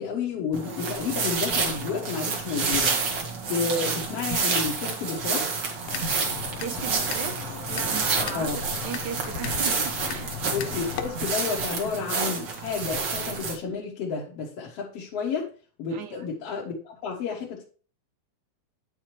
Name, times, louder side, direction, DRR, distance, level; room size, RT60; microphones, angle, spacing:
voice 1, 0.0-3.0 3.5-5.5 8.3-8.6 10.5-15.5 15.8-17.6, left 5 dB, 60° left, -2 dB, 2.0 m, -31 dB
sound 1, 0.5-13.5, right 4 dB, 50° right, 1.6 m, -29 dB
sound 2, 5.8-11.1, left 9 dB, 85° left, 1.4 m, -36 dB
voice 2, 6.6-10.3 15.9-16.3, right 8 dB, 80° right, 5 dB, 2.3 m, -37 dB
8.9 x 5.9 x 3.2 m, 0.39 s
omnidirectional pair, 3.4 m